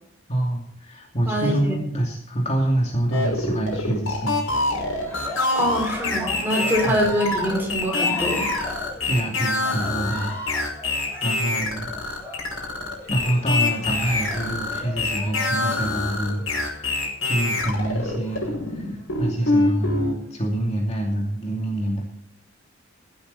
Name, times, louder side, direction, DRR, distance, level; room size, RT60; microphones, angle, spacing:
voice 1, 0.3-4.4 6.8-7.0 9.1-10.3 11.2-12.1 13.1-16.9 17.2-22.0, right 1 dB, 30° left, 0 dB, 2.7 m, -26 dB
voice 2, 1.2-1.7 5.5-8.5, equal, 10° right, -1 dB, 5.6 m, -24 dB
sound 1, 3.1-20.1, left 2 dB, 90° left, 5.7 m, -25 dB
Cheering, 4.9-16.6 17.8-18.7 19.4-20.1, left 1 dB, 10° left, 7.3 m, -36 dB
15.5 x 13.0 x 4.2 m, 0.69 s
head